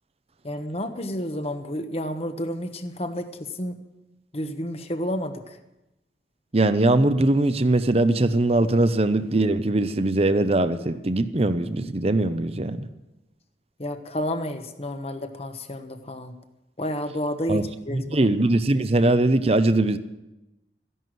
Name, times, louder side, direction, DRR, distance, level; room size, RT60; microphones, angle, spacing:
voice 1, 0.4-3.8 4.3-5.6 13.8-16.3 16.8-18.3, left 1 dB, 35° left, 1.2 m, -30 dB
voice 2, 6.5-12.9 17.5-17.6 17.9-20.0, right 2 dB, 35° right, 0.7 m, -21 dB
14.5 x 11.0 x 7.7 m
head